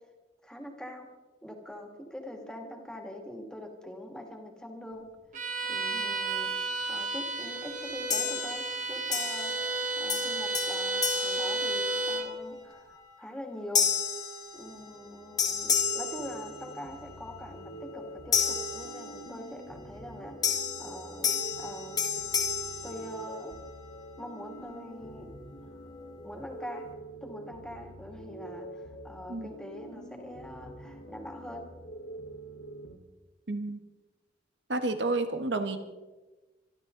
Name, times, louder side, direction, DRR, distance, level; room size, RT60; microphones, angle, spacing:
voice 1, 0.4-1.1 1.4-5.1 5.7-6.5 6.9-13.9 14.5-22.0 22.8-23.6 24.2-25.3 26.2-26.9 27.2-31.7, left 1 dB, 5° left, 2 dB, 2.5 m, -43 dB
Bowed string instrument, 5.3-12.3, right 2 dB, 45° right, 1.6 m, -32 dB
sound 1, 8.1-8.8 9.1-9.8 10.1-12.3 12.8-13.0 13.7-15.1 15.4-17.0 18.3-19.5 20.4-23.7, left 6 dB, 20° left, 1.9 m, -31 dB
sound 2, 14.6-33.0, right 1 dB, 65° left, 1.9 m, -46 dB
voice 2, 33.5-33.8 34.7-35.8, right 2 dB, 75° right, 8 dB, 1.4 m, -30 dB
25.5 x 12.5 x 4.0 m, 1.2 s
head